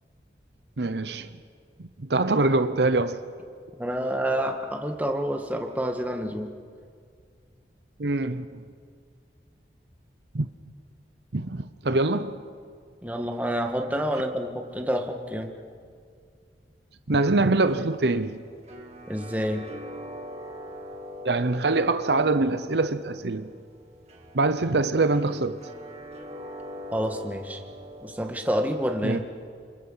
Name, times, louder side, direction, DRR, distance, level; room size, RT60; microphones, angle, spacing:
voice 1, 0.8-1.4 1.8-3.2 8.0-8.6 10.3-10.5 11.3-12.4 17.1-18.4 21.2-23.5 24.3-25.6 29.0-29.2, right 3 dB, 70° right, 0.8 m, -24 dB
voice 2, 3.8-6.5 13.0-15.6 19.1-19.7 26.9-27.6 28.0-29.2, equal, 10° right, 1.8 m, -28 dB
sound 1, 17.3-28.9, left 1 dB, 35° right, 2.4 m, -43 dB
29.5 x 27.5 x 5.7 m
head